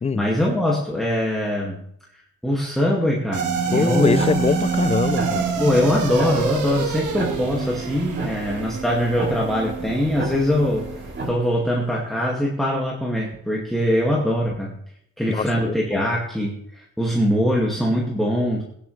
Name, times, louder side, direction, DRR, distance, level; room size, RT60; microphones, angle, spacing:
voice 1, 0.1-1.8 2.4-4.2 5.6-10.9 11.3-14.8 15.2-18.6, equal, ahead, -3 dB, 2.1 m, -22 dB
sound 1, 3.3-11.8, right 6 dB, 80° right, 2.0 m, -27 dB
voice 2, 3.7-5.4 15.3-16.0, left 5 dB, 20° left, 18 dB, 0.5 m, -23 dB
sound 2, 4.0-11.3, right 2 dB, 40° right, 5.8 m, -33 dB
16.0 x 11.0 x 3.3 m, 0.71 s
cardioid pair, 90°, 30 cm